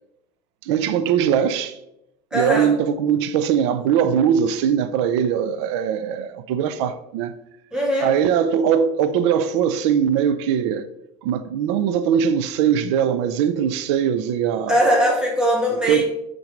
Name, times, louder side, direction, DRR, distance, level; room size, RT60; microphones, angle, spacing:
voice 1, 0.6-1.8 2.3-7.3 8.0-10.9 11.2-14.7 15.8-16.0, right 8 dB, 85° right, 0.6 m, -21 dB
voice 2, 2.3-2.7 7.7-8.1 14.7-16.0, equal, 5° right, 2.1 m, -20 dB
7.8 x 6.0 x 5.2 m
cardioid pair, 165°, 14 cm